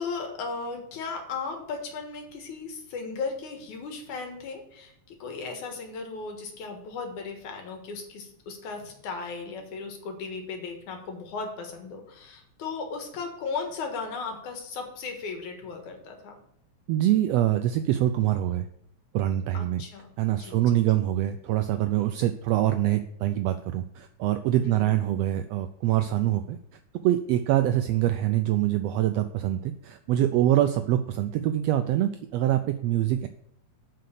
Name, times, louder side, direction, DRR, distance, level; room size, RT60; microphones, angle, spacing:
voice 1, 0.0-16.4 19.5-20.6 24.6-24.9, left 4 dB, 85° left, 3 dB, 3.0 m, -36 dB
voice 2, 16.9-18.7 19.1-19.8 20.2-26.6 27.0-33.3, right 13 dB, 80° right, 9 dB, 1.5 m, -24 dB
7.8 x 5.5 x 6.6 m, 0.73 s
omnidirectional pair, 3.3 m